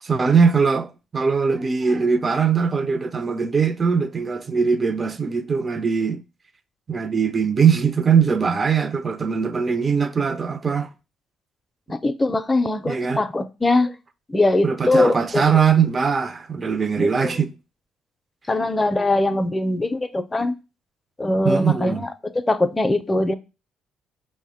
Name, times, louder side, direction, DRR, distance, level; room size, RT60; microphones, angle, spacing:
voice 1, 0.0-6.2 6.9-10.9 12.9-13.2 14.6-17.5 21.4-22.0, right 6 dB, 35° right, 0.5 m, -21 dB
voice 2, 11.9-13.9 14.3-15.4 17.0-17.1 18.5-20.5 21.2-23.3, left 2 dB, 20° left, 0.5 m, -21 dB
5.2 x 2.1 x 4.8 m
supercardioid pair, 70°, 0 cm